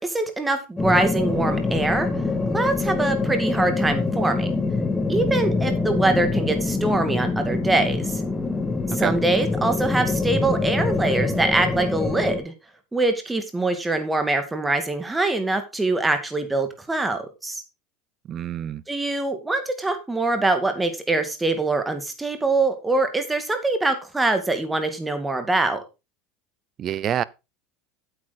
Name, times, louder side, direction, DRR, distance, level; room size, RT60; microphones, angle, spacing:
voice 1, 0.0-2.1 2.5-4.5 5.1-8.2 8.9-12.5 12.9-17.6 18.9-25.8, right 2 dB, 10° right, 2.3 m, -24 dB
sound 1, 0.8-12.4, left 3 dB, 15° left, 2.2 m, -25 dB
voice 2, 18.3-18.8 26.8-27.2, right 10 dB, 40° right, 0.6 m, -26 dB
8.8 x 8.5 x 4.1 m
supercardioid pair, 105°, 0 cm